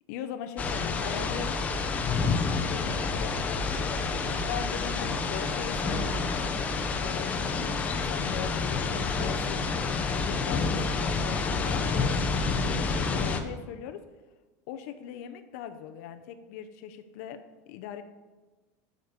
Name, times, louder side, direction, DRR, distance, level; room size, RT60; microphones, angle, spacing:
voice 1, 0.1-1.6 2.7-7.6 7.9-9.6 10.1-14.0 14.7-17.4 17.7-18.0, left 9 dB, 60° left, 8 dB, 0.7 m, -40 dB
sound 1, 0.6-13.4, left 4 dB, 15° left, 0.6 m, -29 dB
9.4 x 5.3 x 8.1 m, 1.2 s
supercardioid pair, 175°, 9 cm